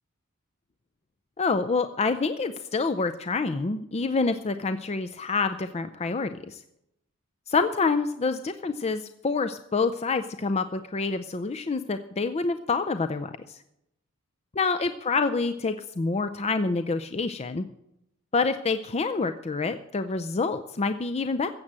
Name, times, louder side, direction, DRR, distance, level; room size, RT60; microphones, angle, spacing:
voice 1, 1.4-6.6 7.5-13.6 14.6-17.7 18.3-21.5, left 4 dB, 30° left, 9 dB, 0.5 m, -27 dB
15.0 x 7.9 x 7.4 m, 0.80 s
head